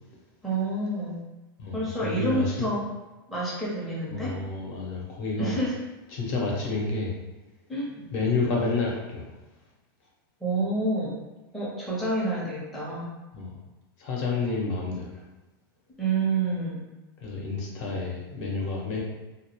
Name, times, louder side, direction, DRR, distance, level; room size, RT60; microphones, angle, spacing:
voice 1, 0.4-1.2 1.7-2.9 3.3-4.3 5.4-5.8 7.7-8.0 10.4-11.1 11.5-13.1 16.0-16.8, right 2 dB, ahead, -8 dB, 0.5 m, -28 dB
voice 2, 1.6-2.7 4.1-5.5 6.1-7.1 8.1-9.3 13.3-13.6 14.0-15.2 17.2-19.0, left 3 dB, 50° left, -3 dB, 0.8 m, -29 dB
2.1 x 2.0 x 2.9 m, 1.1 s
supercardioid pair, 140°, 12 cm